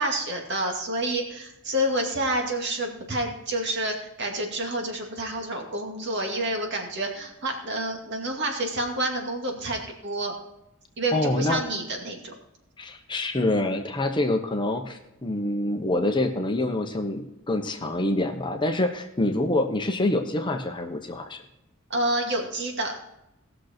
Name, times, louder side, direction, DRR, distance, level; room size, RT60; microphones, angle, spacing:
voice 1, 0.0-10.3 11.0-12.3 21.9-22.9, right 1 dB, 55° right, 2 dB, 2.3 m, -28 dB
voice 2, 11.1-11.6 12.8-21.4, left 2 dB, 20° left, 4 dB, 1.0 m, -26 dB
18.5 x 6.5 x 4.4 m, 0.85 s
head